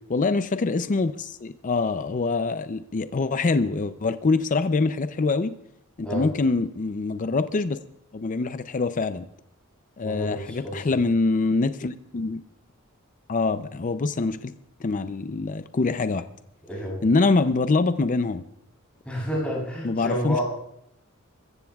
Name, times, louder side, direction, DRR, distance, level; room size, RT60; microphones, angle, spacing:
voice 1, 0.1-5.5 6.0-7.8 8.1-9.3 10.0-12.4 13.3-14.5 14.8-16.2 17.0-18.4 19.8-20.4, left 3 dB, 40° left, 12 dB, 0.5 m, -24 dB
voice 2, 10.0-10.8 16.7-17.0 19.1-20.4, equal, 5° left, -4 dB, 7.2 m, -30 dB
22.5 x 15.0 x 2.4 m, 0.77 s
head